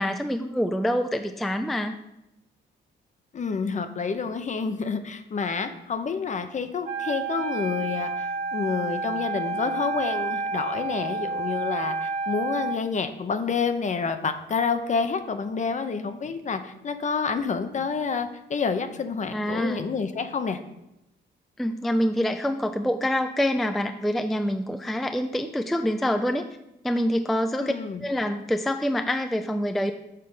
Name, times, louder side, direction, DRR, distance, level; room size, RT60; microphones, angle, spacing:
voice 1, 0.0-2.0 19.3-19.9 21.6-26.4 26.8-27.7 28.0-29.9, equal, ahead, 7 dB, 0.3 m, -26 dB
voice 2, 3.3-20.6 27.6-28.1, left 5 dB, 40° left, 9 dB, 0.7 m, -28 dB
Wind instrument woodwind instrument, 6.8-12.8, right 3 dB, 60° right, 1.5 m, -30 dB
6.6 x 3.8 x 5.4 m, 0.87 s
cardioid pair, 90°, 20 cm